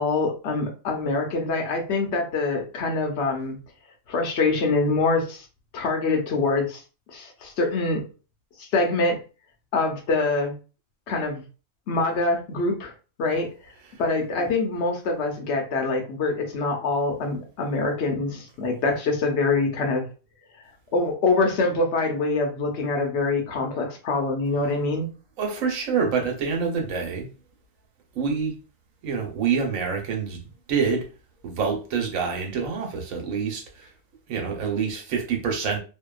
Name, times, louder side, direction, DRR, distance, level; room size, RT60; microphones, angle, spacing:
voice 1, 0.0-3.6 4.1-5.5 5.7-6.8 7.1-8.0 8.6-9.2 9.7-10.5 11.1-11.4 11.9-12.9 13.2-13.5 14.0-20.1 20.9-25.1, left 3 dB, 60° left, 0.9 m, -24 dB
voice 2, 25.4-27.3 28.1-28.6 29.0-30.4 30.7-31.1 31.4-33.9 34.3-35.8, right 6 dB, 80° right, 1.1 m, -26 dB
2.7 x 2.2 x 2.3 m
omnidirectional pair, 1.4 m